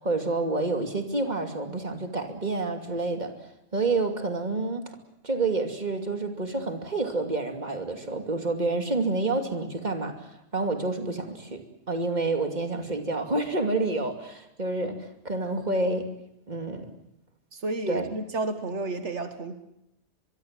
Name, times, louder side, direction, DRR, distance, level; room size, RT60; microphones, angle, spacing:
voice 1, 0.0-3.3 3.7-4.8 5.2-16.1 16.5-16.9 17.9-18.1, right 3 dB, 40° right, 5 dB, 2.8 m, -28 dB
voice 2, 17.5-19.6, right 2 dB, 80° right, 8 dB, 1.9 m, -31 dB
24.5 x 23.5 x 7.6 m, 0.83 s
omnidirectional pair, 1.2 m